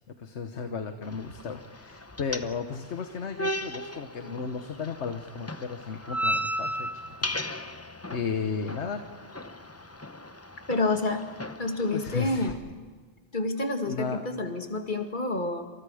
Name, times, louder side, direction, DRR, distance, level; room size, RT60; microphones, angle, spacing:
voice 1, 0.2-9.0 11.9-12.5 13.9-14.3, left 5 dB, 80° left, 7 dB, 1.4 m, -34 dB
sound 1, 1.0-12.5, equal, 15° left, 0.7 m, -36 dB
voice 2, 10.7-11.3 11.6-12.6 13.3-15.6, left 2 dB, 45° left, 4 dB, 2.3 m, -28 dB
28.5 x 27.5 x 5.0 m, 1.4 s
omnidirectional pair, 1.1 m